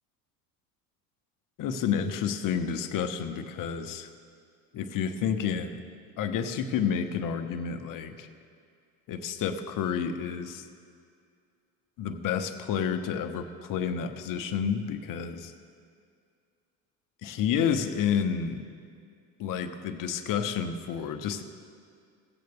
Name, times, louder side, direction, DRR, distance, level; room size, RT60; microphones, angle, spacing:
voice 1, 1.6-4.1 4.7-5.8 6.2-8.3 9.1-10.6 12.0-15.5 17.2-18.6 19.4-21.4, left 7 dB, 45° left, 8 dB, 0.9 m, -30 dB
17.0 x 7.8 x 3.5 m, 2.3 s
supercardioid pair, 90°, 44 cm